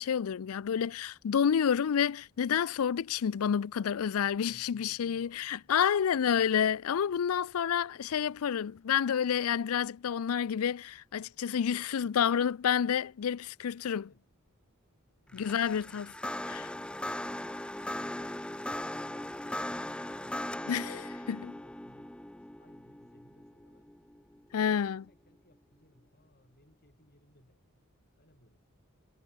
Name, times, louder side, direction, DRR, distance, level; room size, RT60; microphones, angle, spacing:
voice 1, 0.0-14.1 15.3-16.1 20.7-21.0 21.3-21.5 24.5-25.0, left 8 dB, 75° left, 0.4 m, -29 dB
voice 2, 4.2-5.7 14.0-14.3 15.1-17.6 21.2-24.0 24.5-27.6 28.2-28.8, left 1 dB, 45° left, 7.3 m, -64 dB
sound 1, 15.3-24.7, left 1 dB, 5° left, 0.5 m, -39 dB
head